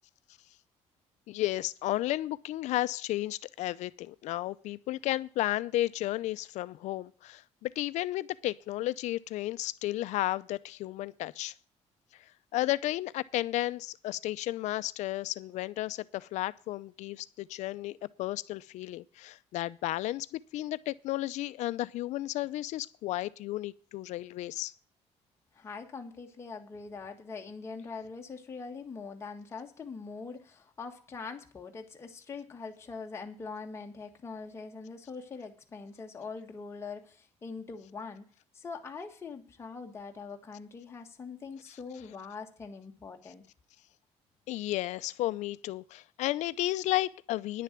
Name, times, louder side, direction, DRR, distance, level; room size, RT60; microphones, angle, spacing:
voice 1, 1.3-11.5 12.5-24.7 44.5-47.6, left 16 dB, 80° left, 0.6 m, -33 dB
voice 2, 25.5-38.3 38.5-43.4, left 4 dB, 20° left, 1.6 m, -43 dB
10.5 x 6.8 x 9.0 m
cardioid pair, 175°, 12 cm